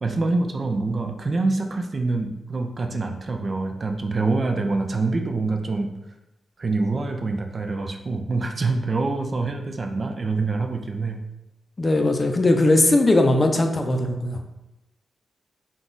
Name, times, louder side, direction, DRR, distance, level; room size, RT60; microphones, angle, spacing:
voice 1, 0.0-5.9 6.6-11.2, right 3 dB, 45° right, 5 dB, 0.4 m, -25 dB
voice 2, 11.8-14.4, left 2 dB, 30° left, 4 dB, 0.5 m, -19 dB
3.8 x 2.4 x 3.8 m, 0.92 s
cardioid pair, 75°, 0 cm